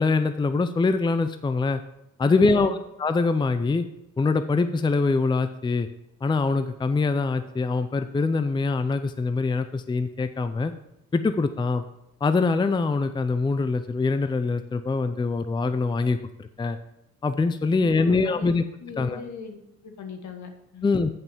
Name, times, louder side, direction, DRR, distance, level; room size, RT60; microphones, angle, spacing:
voice 1, 0.0-1.8 2.2-3.8 4.2-5.9 6.2-10.7 11.1-11.8 12.2-16.8 17.2-18.6 19.0-19.2 20.8-21.1, left 3 dB, 15° left, 10 dB, 0.5 m, -24 dB
voice 2, 2.2-2.8 17.7-18.5 18.8-20.9, left 5 dB, 70° left, 5 dB, 1.7 m, -40 dB
8.4 x 5.4 x 7.3 m, 0.85 s
cardioid pair, 90°, 30 cm